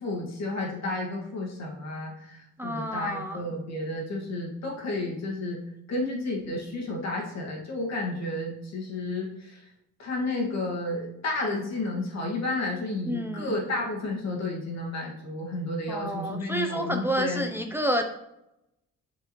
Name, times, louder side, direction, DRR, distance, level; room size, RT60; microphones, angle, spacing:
voice 1, 0.0-5.6 5.9-9.6 10.0-17.5, left 2 dB, 60° left, -1 dB, 2.0 m, -32 dB
voice 2, 2.6-3.5 13.1-13.5 15.9-18.0, equal, 5° right, 4 dB, 0.6 m, -29 dB
6.8 x 4.9 x 3.1 m, 0.84 s
cardioid pair, 90°, 30 cm